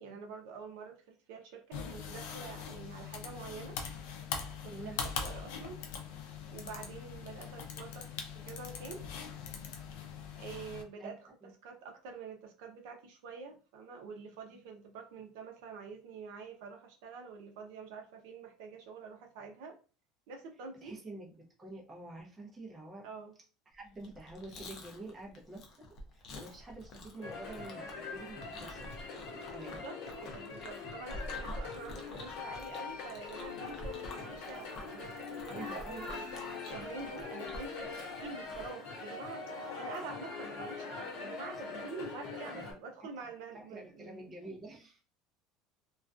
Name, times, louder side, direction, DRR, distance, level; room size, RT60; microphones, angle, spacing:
voice 1, 0.0-3.8 4.6-5.8 6.5-8.2 8.4-9.0 10.4-19.8 20.3-20.9 23.0-23.3 28.6-28.9 29.3-36.2 36.6-44.2, right 4 dB, 75° right, 0.5 m, -47 dB
sound 1, 1.7-10.8, left 6 dB, 90° left, 0.4 m, -42 dB
voice 2, 20.8-21.3 21.6-23.1 23.7-25.9 26.1-28.9 29.2-29.8 35.5-36.1 42.5-42.6 43.0-43.1 43.5-45.0, right 2 dB, 15° right, 0.6 m, -47 dB
Chewing mastication, 23.9-38.7, left 1 dB, 40° left, 0.5 m, -48 dB
sound 2, 27.2-42.7, left 4 dB, 65° left, 0.9 m, -43 dB
2.3 x 2.2 x 2.4 m
cardioid pair, 160°, 0 cm